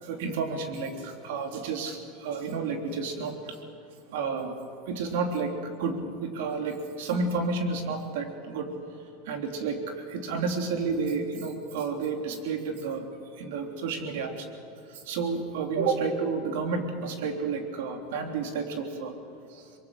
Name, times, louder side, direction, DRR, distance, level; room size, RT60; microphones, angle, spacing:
voice 1, 0.0-3.6 4.1-5.5 5.8-8.7 9.2-13.0 13.3-14.4 14.9-19.1 19.5-19.6, right 4 dB, 80° right, 4 dB, 3.2 m, -31 dB
24.5 x 22.0 x 6.6 m, 2.6 s
supercardioid pair, 120°, 0 cm